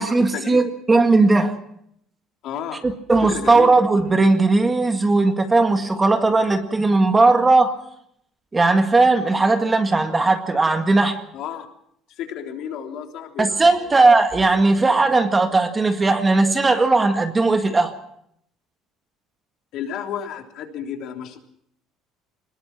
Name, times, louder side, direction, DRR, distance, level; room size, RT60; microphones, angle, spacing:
voice 1, 0.0-1.5 2.8-7.7 8.5-11.2 13.4-17.9, right 3 dB, 15° right, 6 dB, 1.9 m, -17 dB
voice 2, 2.4-2.8 3.2-3.7 11.3-11.7 12.2-14.0 19.7-21.4, left 9 dB, 55° left, 3 dB, 3.4 m, -32 dB
24.5 x 20.5 x 5.9 m, 0.71 s
cardioid pair, 150°, 0 cm